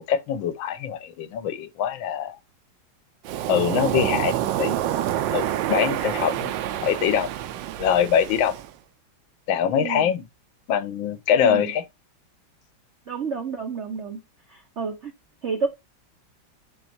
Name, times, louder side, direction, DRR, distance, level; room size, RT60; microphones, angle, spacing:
voice 1, 0.0-2.4 3.5-4.8 5.3-6.5 6.8-7.3 7.8-8.5 9.5-10.2 10.7-11.8, left 8 dB, 80° left, 1.4 m, -23 dB
Waves surf, 3.3-8.7, right 12 dB, 75° right, 1.2 m, -27 dB
voice 2, 9.8-10.1 11.4-11.7 13.1-14.2 14.5-15.1 15.4-15.7, right 5 dB, 60° right, 0.7 m, -30 dB
5.4 x 4.5 x 4.2 m
omnidirectional pair, 2.2 m